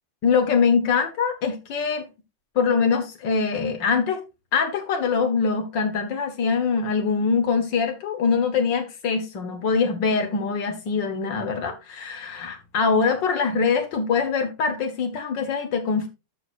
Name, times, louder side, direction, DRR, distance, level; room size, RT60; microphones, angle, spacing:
voice 1, 0.2-2.0 2.5-4.2 4.5-16.1, left 5 dB, 75° left, 1.0 m, -23 dB
13.5 x 6.3 x 2.5 m
omnidirectional pair, 3.9 m